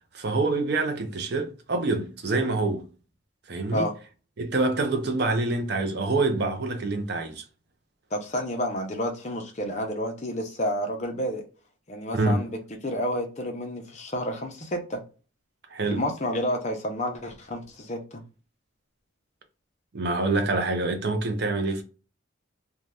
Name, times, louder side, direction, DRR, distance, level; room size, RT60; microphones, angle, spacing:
voice 1, 0.1-2.8 3.5-3.9 4.4-7.4 12.1-12.4 15.7-16.0 19.9-21.8, right 3 dB, 55° right, 0.5 m, -26 dB
voice 2, 8.1-11.4 11.9-12.6 12.8-15.0 15.9-18.2, equal, 35° left, 0.6 m, -30 dB
2.6 x 2.2 x 3.2 m
head